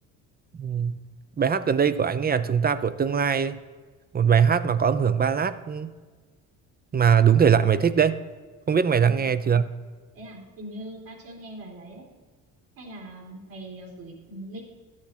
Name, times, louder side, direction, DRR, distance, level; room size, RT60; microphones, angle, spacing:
voice 1, 0.6-1.0 1.4-3.6 4.1-5.9 6.9-8.2 8.7-9.7, right 7 dB, 25° right, 14 dB, 0.6 m, -21 dB
voice 2, 10.1-12.0 12.8-14.6, right 1 dB, 65° right, 0 dB, 3.6 m, -41 dB
13.0 x 7.4 x 4.5 m, 1.4 s
supercardioid pair, 75°, 36 cm